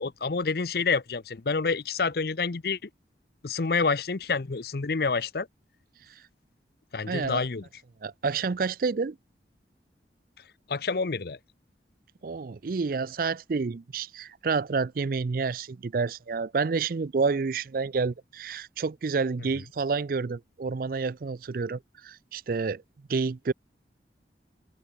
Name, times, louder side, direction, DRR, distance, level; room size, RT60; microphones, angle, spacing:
voice 1, 0.0-2.8 3.4-5.5 6.9-7.6 10.7-11.4, left 4 dB, 55° left, 0.7 m, -28 dB
voice 2, 7.1-7.5 8.0-9.2 12.2-22.8 23.1-23.5, right 4 dB, 50° right, 0.4 m, -29 dB
open air
head